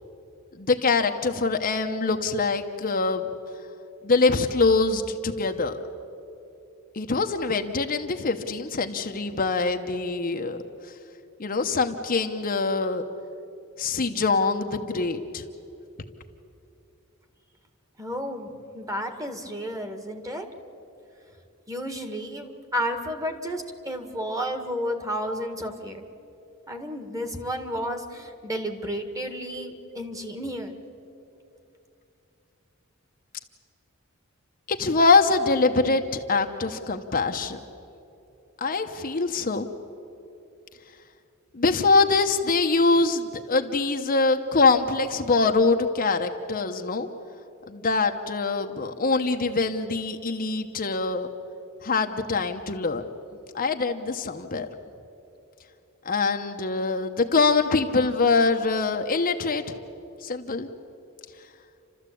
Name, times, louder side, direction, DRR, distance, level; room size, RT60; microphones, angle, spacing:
voice 1, 0.6-3.3 4.0-5.8 6.9-10.6 11.4-13.0 13.8-15.4 34.7-37.6 38.6-39.7 41.5-47.1 47.7-51.3 51.8-53.0 53.5-54.7 56.0-59.6 60.2-60.7, left 3 dB, 40° left, 5 dB, 0.9 m, -24 dB
voice 2, 18.0-20.5 21.7-26.0 26.7-30.7, equal, 15° right, 6 dB, 1.7 m, -32 dB
30.0 x 13.5 x 8.5 m, 2.8 s
head